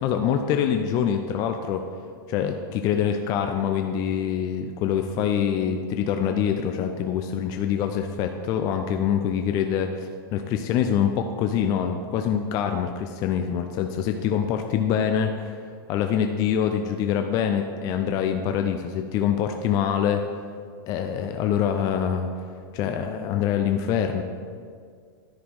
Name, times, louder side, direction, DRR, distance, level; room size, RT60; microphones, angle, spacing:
voice 1, 0.0-1.8 2.3-15.6 15.9-20.2 20.9-22.3 22.7-24.2, left 8 dB, 30° left, 5 dB, 0.4 m, -25 dB
10.0 x 4.3 x 4.7 m, 2.1 s
supercardioid pair, 150°, 12 cm